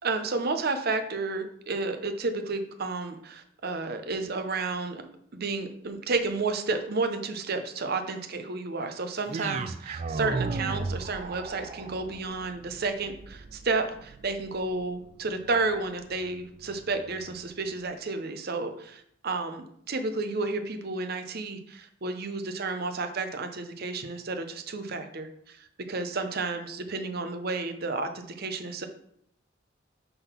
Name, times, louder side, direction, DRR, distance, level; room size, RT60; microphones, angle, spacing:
voice 1, 0.0-5.0 5.3-28.9, right 3 dB, 55° right, 7 dB, 0.7 m, -31 dB
sound 1, 9.3-17.5, right 4 dB, 35° right, 0.3 m, -37 dB
5.4 x 3.8 x 5.7 m, 0.68 s
head